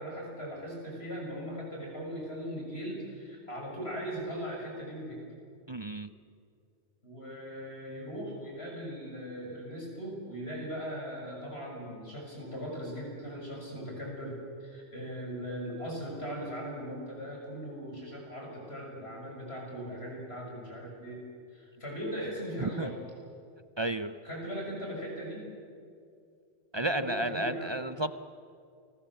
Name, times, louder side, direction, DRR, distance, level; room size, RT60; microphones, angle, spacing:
voice 1, 0.0-5.2 7.0-21.2 21.5-23.0 24.2-25.5 26.8-27.7, equal, 60° left, 0 dB, 7.0 m, -39 dB
voice 2, 5.7-6.1 22.6-22.9 23.8-24.2 26.7-28.1, right 2 dB, 35° right, 12 dB, 0.5 m, -32 dB
29.0 x 21.5 x 7.6 m, 2.4 s
omnidirectional pair, 1.2 m